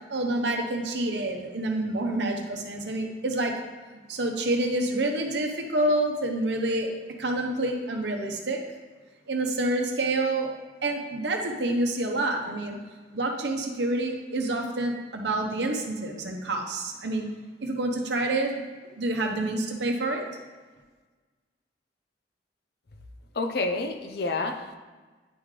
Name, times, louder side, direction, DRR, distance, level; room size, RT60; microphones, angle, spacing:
voice 1, 0.1-3.5 4.1-6.9 7.2-8.6 9.3-10.5 10.8-12.8 13.1-17.3 17.6-18.5 19.0-20.3, right 2 dB, 70° right, 2 dB, 0.9 m, -28 dB
voice 2, 23.3-24.8, left 3 dB, 60° left, 5 dB, 0.6 m, -29 dB
10.5 x 3.7 x 3.2 m, 1.3 s
head